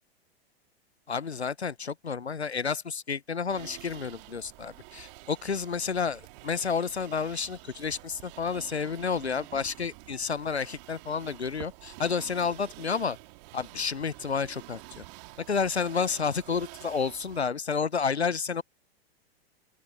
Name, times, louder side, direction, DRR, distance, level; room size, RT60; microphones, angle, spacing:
voice 1, 1.1-13.2 13.5-15.0 15.5-18.6, left 5 dB, 90° left, 0.7 m, -30 dB
sound 1, 3.5-17.4, right 26 dB, 45° right, 3.0 m, -48 dB
open air
figure-of-eight pair, 100°, 31 cm